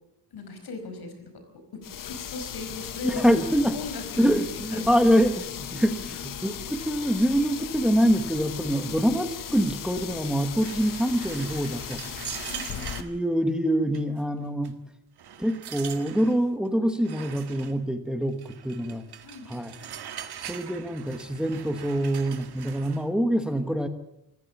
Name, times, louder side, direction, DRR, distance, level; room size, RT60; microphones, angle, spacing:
voice 1, 0.3-1.4 1.7-3.3 3.7-5.3 12.5-12.9 19.2-19.5, left 3 dB, 80° left, 7 dB, 5.0 m, -38 dB
sound 1, 1.8-13.0, left 9 dB, 55° left, 0.9 m, -37 dB
voice 2, 3.0-3.8 4.2-5.4 5.7-12.0 13.0-14.7 15.4-19.0 19.5-19.8 20.5-23.9, equal, ahead, 7 dB, 1.2 m, -25 dB
sound 2, 10.6-13.1 13.9-14.2 14.6-14.7 15.2-16.4 17.0-17.7 18.4-23.1, right 9 dB, 85° right, 1.7 m, -41 dB
25.5 x 15.0 x 7.1 m, 0.80 s
wide cardioid pair, 180°, 38 cm